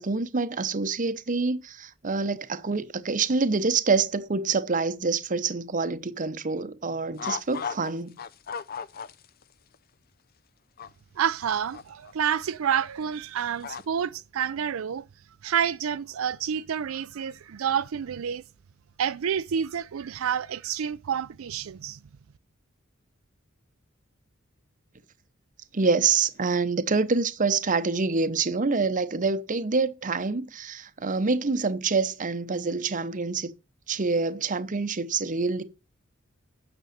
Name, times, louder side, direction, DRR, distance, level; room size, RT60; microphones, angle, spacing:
voice 1, 0.0-8.2 25.7-33.5 33.9-35.6, right 4 dB, 40° right, 0.8 m, -26 dB
sound 1, 7.2-7.9 8.2-9.4 9.7-9.8 10.8-10.9 11.7-12.1 13.6-13.8, left 6 dB, 45° left, 0.5 m, -34 dB
voice 2, 11.2-15.0 15.4-18.4 19.0-22.0, right 8 dB, 80° right, 0.4 m, -28 dB
9.2 x 6.2 x 6.6 m
head